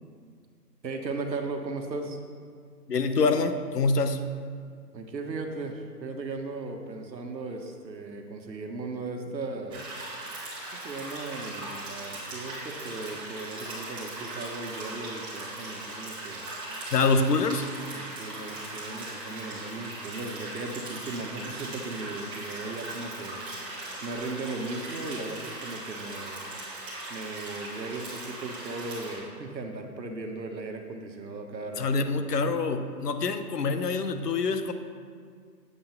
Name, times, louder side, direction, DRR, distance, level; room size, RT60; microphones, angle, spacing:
voice 1, 0.8-2.2 4.9-10.1 10.7-16.5 17.9-23.4 24.0-26.4 27.1-31.9, right 3 dB, 85° right, 4 dB, 1.4 m, -37 dB
voice 2, 2.9-4.2 16.9-17.7 31.8-34.7, left 4 dB, 70° left, 9 dB, 1.0 m, -25 dB
sound 1, 9.7-29.1, right 2 dB, 10° right, 1.5 m, -39 dB
8.7 x 5.7 x 5.5 m, 2.1 s
hypercardioid pair, 150°, 50 cm